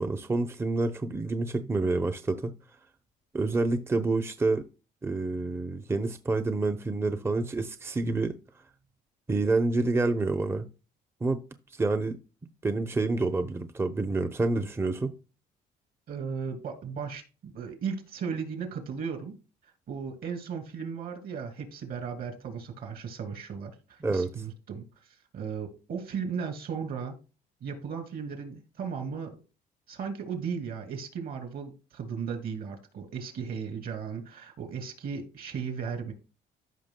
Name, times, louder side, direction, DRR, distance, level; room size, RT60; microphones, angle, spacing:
voice 1, 0.0-2.5 3.3-4.6 5.0-8.4 9.3-10.7 11.2-11.4 11.8-12.2 12.6-15.1 24.0-24.4, right 3 dB, 15° right, 0.7 m, -28 dB
voice 2, 16.1-19.3 19.9-24.8 25.3-27.2 27.6-29.4 29.9-36.1, right 6 dB, 60° right, 2.6 m, -36 dB
14.0 x 5.8 x 2.2 m
cardioid pair, 110°, 17 cm